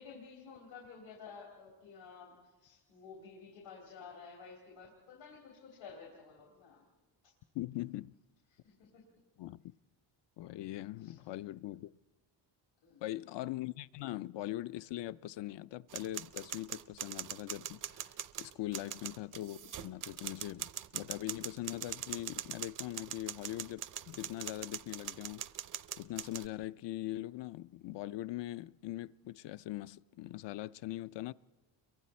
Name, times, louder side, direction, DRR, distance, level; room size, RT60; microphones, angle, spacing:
voice 1, 0.0-6.8 7.2-7.3 8.6-9.0 11.0-11.2 12.8-13.0 18.8-18.9, left 5 dB, 85° left, 3.6 m, -52 dB
voice 2, 7.5-8.1 9.4-9.6 10.4-11.9 13.0-25.4 26.0-31.3, left 15 dB, 65° left, 0.6 m, -41 dB
sound 1, 15.9-26.5, right 10 dB, 45° right, 0.6 m, -43 dB
29.5 x 23.0 x 4.3 m
cardioid pair, 120°, 45 cm